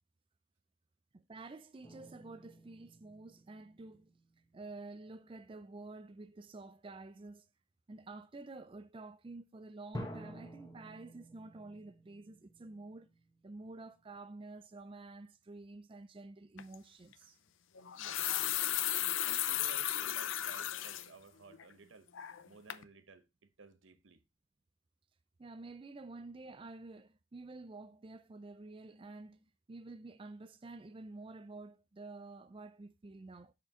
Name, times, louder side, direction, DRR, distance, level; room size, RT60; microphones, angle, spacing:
voice 1, 1.1-4.1 4.5-7.5 7.9-13.1 13.4-17.4 25.4-33.5, right 3 dB, 25° right, 0.4 m, -50 dB
sound 1, 1.8-4.8 5.4-5.7 9.9-14.3, equal, 20° left, 1.2 m, -51 dB
sound 2, 16.6-16.8 17.8-21.1 21.5-21.6 22.1-22.5 22.7-22.8, left 12 dB, 85° left, 0.5 m, -35 dB
voice 2, 19.2-22.1 22.4-24.2, right 4 dB, 85° right, 0.9 m, -56 dB
7.2 x 4.5 x 3.6 m
head